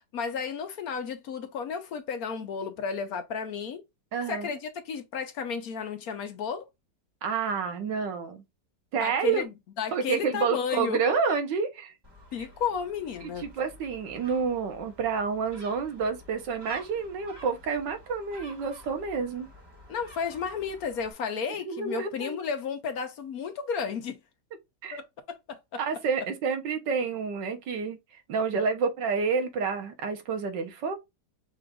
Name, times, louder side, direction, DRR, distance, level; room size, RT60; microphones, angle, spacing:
voice 1, 0.1-3.8 4.3-6.7 9.0-11.0 12.3-13.5 19.9-24.2 24.9-25.8, left 6 dB, 65° left, 1.1 m, -33 dB
voice 2, 4.1-4.5 7.2-8.4 8.9-9.4 9.9-11.9 13.2-19.5 21.7-22.4 24.8-25.0 25.8-28.0 28.3-30.9, right 5 dB, 85° right, 1.7 m, -29 dB
Gull seagull, 12.0-21.1, equal, 15° right, 1.3 m, -51 dB
5.8 x 2.5 x 3.5 m
omnidirectional pair, 1.9 m